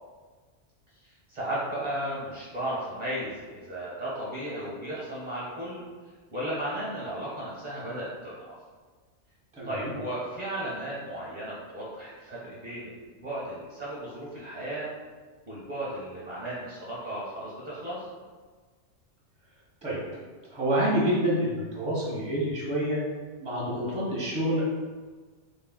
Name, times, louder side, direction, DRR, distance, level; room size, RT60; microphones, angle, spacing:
voice 1, 1.0-5.8 6.3-8.5 9.6-14.9 15.4-18.1, right 1 dB, 40° right, -8 dB, 0.8 m, -35 dB
voice 2, 9.6-9.9 19.8-20.0 20.5-23.0 23.4-24.6, equal, 5° right, -7 dB, 0.8 m, -27 dB
3.5 x 2.7 x 2.2 m, 1.4 s
omnidirectional pair, 1.2 m